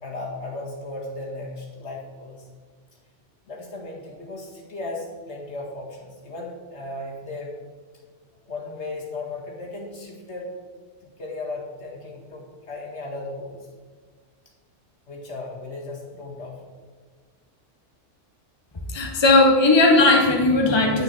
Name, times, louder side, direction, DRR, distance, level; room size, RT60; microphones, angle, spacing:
voice 1, 0.0-2.5 3.5-7.6 8.5-10.5 11.0-13.6 15.1-16.7, left 2 dB, 65° left, -1 dB, 2.1 m, -36 dB
voice 2, 18.9-21.0, left 2 dB, 20° left, 1 dB, 1.1 m, -17 dB
9.0 x 9.0 x 4.5 m, 1.5 s
omnidirectional pair, 1.3 m